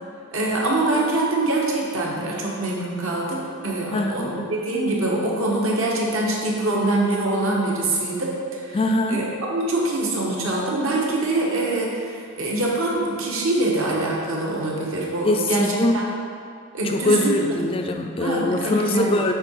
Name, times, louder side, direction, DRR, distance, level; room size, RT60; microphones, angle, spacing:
voice 1, 0.3-8.8 9.1-16.0 16.7-17.6 18.2-19.2, right 2 dB, 70° right, -3 dB, 1.3 m, -24 dB
voice 2, 3.9-4.4 8.7-9.3 15.2-16.0 16.8-19.3, left 2 dB, 25° left, 4 dB, 0.3 m, -22 dB
8.7 x 3.9 x 4.6 m, 2.3 s
head